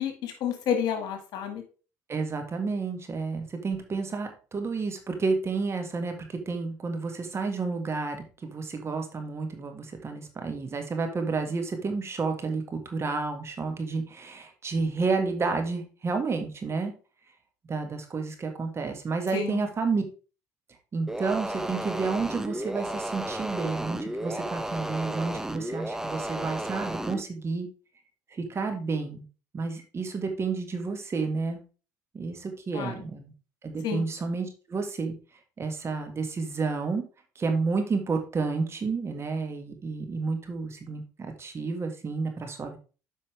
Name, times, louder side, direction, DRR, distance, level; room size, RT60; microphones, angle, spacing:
voice 1, 0.0-1.6 19.3-19.6 32.7-32.9 33.8-34.0, left 7 dB, 70° left, 6 dB, 2.0 m, -30 dB
voice 2, 2.1-16.9 17.7-20.0 20.9-27.7 28.3-29.2 29.5-31.6 32.1-33.3 33.6-35.1 35.6-37.0 37.4-42.8, right 4 dB, 35° right, 5 dB, 1.8 m, -30 dB
sound 1, 21.1-27.2, right 1 dB, 5° right, 0.8 m, -33 dB
8.3 x 5.5 x 3.3 m, 0.35 s
supercardioid pair, 70°, 7 cm